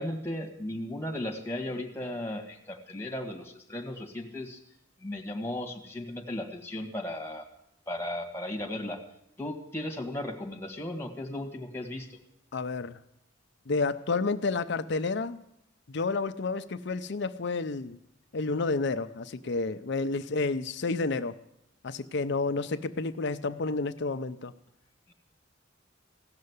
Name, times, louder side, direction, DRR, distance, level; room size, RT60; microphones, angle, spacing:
voice 1, 0.0-4.6 5.0-7.5 7.9-9.0 9.4-12.2, left 1 dB, 15° left, 3 dB, 1.7 m, -36 dB
voice 2, 12.5-13.0 13.7-15.4 15.9-18.0 18.3-21.4 21.8-24.5, left 3 dB, 60° left, 11 dB, 0.6 m, -30 dB
16.5 x 6.6 x 9.6 m, 0.79 s
head